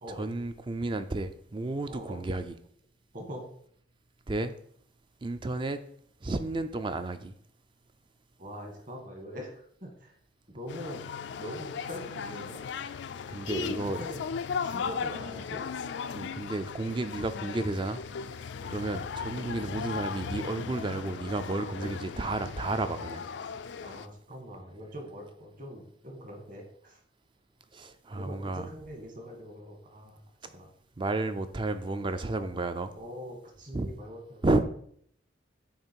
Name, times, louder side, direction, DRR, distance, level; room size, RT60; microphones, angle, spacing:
voice 1, 0.1-2.5 4.3-4.5 5.2-5.8 6.2-7.4 13.3-14.0 16.1-18.0 18.4-23.2 27.7-28.7 31.0-32.9 33.7-33.9 34.4-34.6, right 2 dB, 25° right, 10 dB, 0.4 m, -32 dB
voice 2, 1.8-2.2 3.1-3.5 8.4-10.2 10.5-11.0 11.4-12.7 13.6-14.2 14.6-15.6 23.8-27.0 28.1-30.2 30.5-30.7 32.0-32.1 32.9-34.5, equal, 40° right, 2 dB, 1.5 m, -43 dB
sound 1, 10.7-24.1, left 6 dB, 60° left, 0.3 m, -37 dB
8.7 x 3.2 x 4.5 m, 0.64 s
head